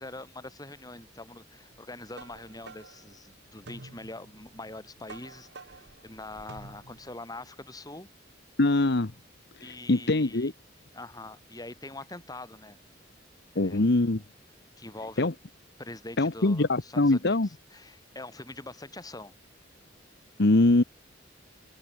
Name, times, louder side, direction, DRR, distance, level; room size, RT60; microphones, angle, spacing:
voice 1, 0.0-8.1 9.6-10.5 10.9-12.8 13.5-13.8 14.8-15.3 15.8-17.4 17.7-19.3, left 2 dB, 20° left, 6.9 m, -43 dB
sound 1, 1.7-7.2, right 3 dB, 60° right, 2.0 m, -49 dB
voice 2, 8.6-9.1 9.6-10.5 13.5-14.2 15.2-15.3 16.2-17.5 20.4-20.8, left 2 dB, 60° left, 1.1 m, -23 dB
head